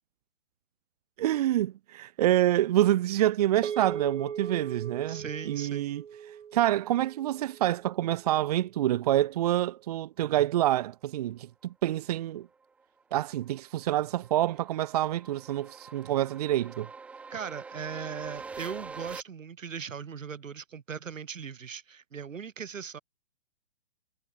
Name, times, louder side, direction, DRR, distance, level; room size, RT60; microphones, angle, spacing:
voice 1, 1.2-6.0 6.5-12.5 13.1-16.9, right 13 dB, 30° right, 1.2 m, -27 dB
sound 1, 3.6-8.1, right 8 dB, 65° right, 3.1 m, -39 dB
voice 2, 5.1-6.0 17.3-23.0, right 7 dB, 85° right, 4.9 m, -39 dB
sound 2, 12.6-19.2, right 4 dB, 5° right, 1.0 m, -45 dB
hypercardioid pair, 165°, 38 cm